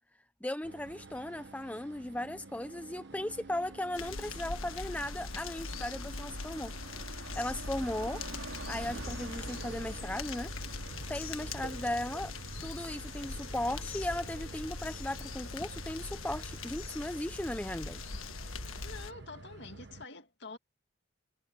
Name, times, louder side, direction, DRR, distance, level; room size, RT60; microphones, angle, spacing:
voice 1, 0.4-6.7 7.3-8.2 8.7-10.5 11.1-12.3 12.6-18.0, left 1 dB, 5° left, 0.4 m, -37 dB
sound 1, 0.6-20.1, right 3 dB, 55° right, 1.1 m, -49 dB
Car passing by, 2.6-17.4 17.6-18.0, right 3 dB, 80° right, 3.5 m, -51 dB
sound 2, 3.9-19.1, left 4 dB, 80° left, 1.5 m, -42 dB
voice 2, 18.8-20.6, left 3 dB, 55° left, 2.3 m, -47 dB
head